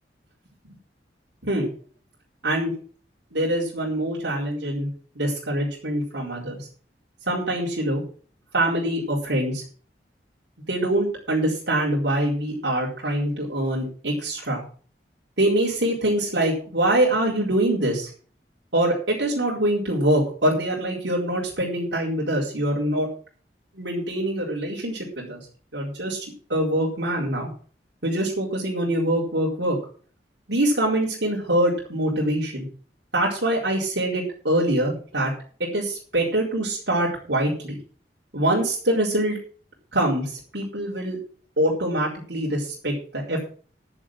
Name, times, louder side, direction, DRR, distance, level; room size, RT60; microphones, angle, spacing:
voice 1, 3.3-4.9 5.1-6.7 7.3-8.0 8.5-9.6 10.7-14.6 15.4-18.1 18.7-23.1 23.7-25.5 25.7-27.5 28.0-29.8 30.5-32.7 33.1-35.3 35.6-37.8 38.3-39.4 39.9-41.2 41.6-43.4, right 1 dB, 90° right, -5 dB, 4.5 m, -24 dB
11.0 x 7.7 x 7.4 m, 0.43 s
head